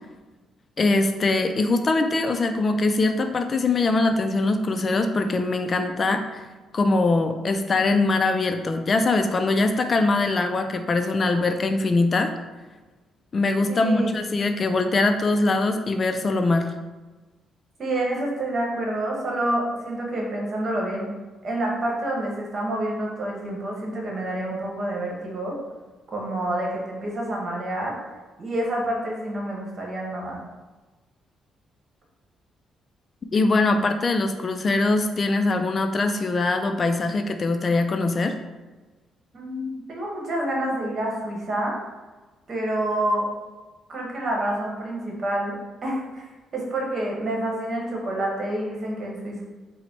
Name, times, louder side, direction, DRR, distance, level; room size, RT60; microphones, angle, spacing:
voice 1, 0.8-6.5 6.7-12.3 13.3-16.7 33.3-38.3, left 3 dB, 40° left, 7 dB, 0.3 m, -22 dB
voice 2, 13.7-14.1 17.8-21.1 21.4-25.6 26.1-28.0 28.4-30.4 39.3-41.8 42.5-43.3 43.9-45.6 45.8-46.2 46.5-49.4, right 1 dB, 45° right, -2 dB, 1.1 m, -28 dB
3.9 x 2.1 x 4.4 m, 1.2 s
cardioid pair, 90°, 0 cm